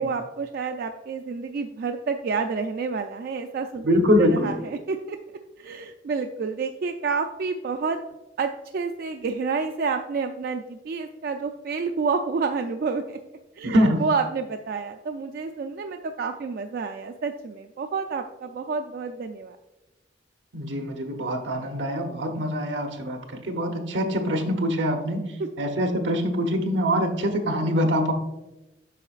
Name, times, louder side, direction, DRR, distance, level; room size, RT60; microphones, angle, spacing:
voice 1, 0.0-5.2 5.6-8.0 8.4-13.2 13.6-19.6, right 4 dB, 55° right, 6 dB, 0.3 m, -29 dB
voice 2, 3.8-4.5 13.6-14.0 20.5-25.3 25.6-28.1, equal, 80° right, 5 dB, 0.9 m, -24 dB
8.3 x 5.7 x 2.4 m, 1.0 s
head